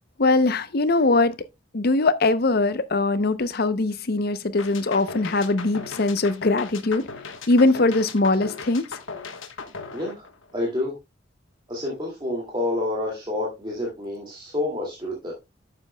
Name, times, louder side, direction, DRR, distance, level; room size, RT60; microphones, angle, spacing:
voice 1, 0.2-1.3 1.7-7.1 7.5-8.9, left 2 dB, 50° left, 0.7 m, -21 dB
sound 1, 4.6-10.8, left 4 dB, 90° left, 1.2 m, -38 dB
voice 2, 9.9-10.2 10.5-10.9 11.7-15.3, left 2 dB, 25° right, 2.3 m, -28 dB
11.0 x 7.6 x 2.2 m
head